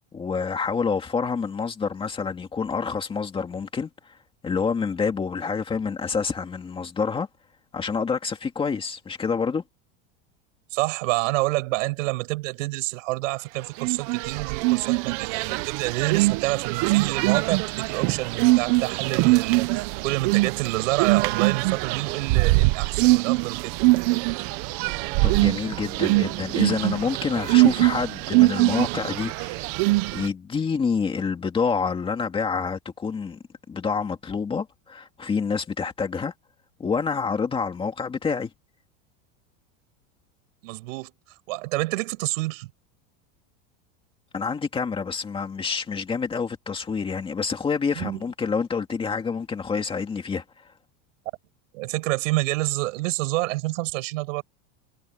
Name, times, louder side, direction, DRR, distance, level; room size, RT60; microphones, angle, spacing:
voice 1, 0.1-4.2 4.4-7.3 7.7-9.6 25.2-29.7 30.1-33.4 33.7-36.3 36.8-38.5 44.3-50.7, left 5 dB, 15° left, 2.4 m, -27 dB
voice 2, 10.7-23.7 40.6-41.1 41.5-42.7 48.0-48.2 51.7-54.4, right 21 dB, 70° right, 7.8 m, -28 dB
sound 1, 13.8-30.3, right 22 dB, 35° right, 0.6 m, -23 dB
supercardioid pair, 175°, 40 cm